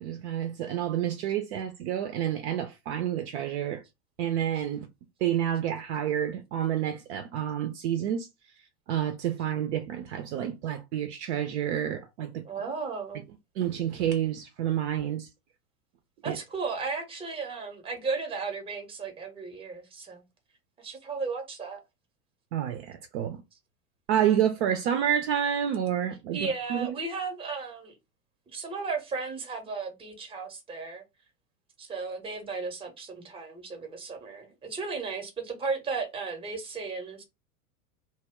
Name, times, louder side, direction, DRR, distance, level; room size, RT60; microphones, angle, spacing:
voice 1, 0.0-3.8 4.2-4.9 5.2-8.3 8.9-12.4 13.6-15.3 16.2-16.4 22.5-23.4 24.1-26.4 26.7-27.0, right 10 dB, 50° right, 0.5 m, -29 dB
voice 2, 12.4-13.2 16.2-20.2 20.8-21.8 26.3-27.9 28.5-31.0 31.8-37.2, right 4 dB, 10° right, 0.7 m, -35 dB
2.1 x 2.0 x 3.5 m
figure-of-eight pair, 90°, 46 cm